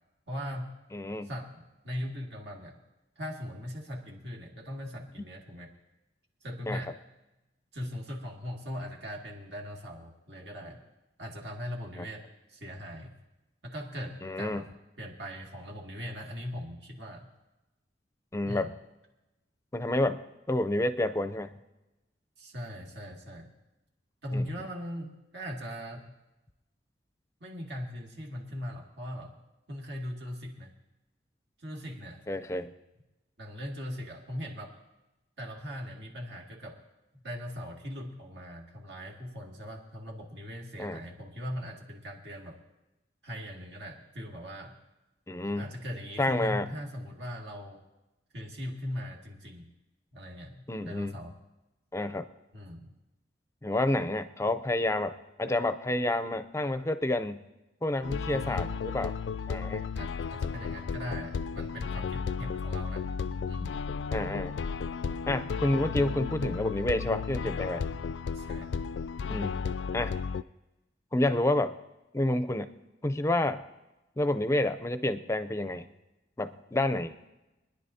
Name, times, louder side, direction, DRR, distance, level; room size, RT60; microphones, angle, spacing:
voice 1, 0.3-0.8 1.2-2.8 3.2-5.7 6.4-7.0 7.7-10.8 11.2-13.1 13.6-14.7 15.0-17.3 18.5-18.7 22.4-23.5 24.2-26.1 27.4-29.4 29.7-30.7 31.6-32.2 33.4-34.8 35.4-36.8 37.1-42.6 43.2-44.8 45.6-47.8 48.3-49.7 50.1-51.4 52.5-52.9 58.3-58.7 59.9-63.1 63.5-63.7 68.3-68.8, equal, 70° right, 0 dB, 2.1 m, -40 dB
voice 2, 0.9-1.3 6.7-6.8 12.0-12.1 14.2-14.6 18.3-18.7 19.7-20.2 20.5-21.6 24.3-24.4 32.3-32.7 40.8-41.0 45.3-45.7 46.2-46.7 50.7-51.2 51.9-52.3 53.6-57.5 57.8-59.1 59.5-59.9 64.1-64.5 65.3-67.9 69.3-69.6 69.9-70.1 71.1-71.7 72.1-72.7 73.0-73.6 74.2-75.9 76.4-77.1, left 1 dB, 15° left, 10 dB, 0.5 m, -29 dB
sound 1, 58.0-70.4, left 5 dB, 85° left, 0.3 m, -34 dB
24.0 x 10.5 x 2.8 m, 1.0 s
head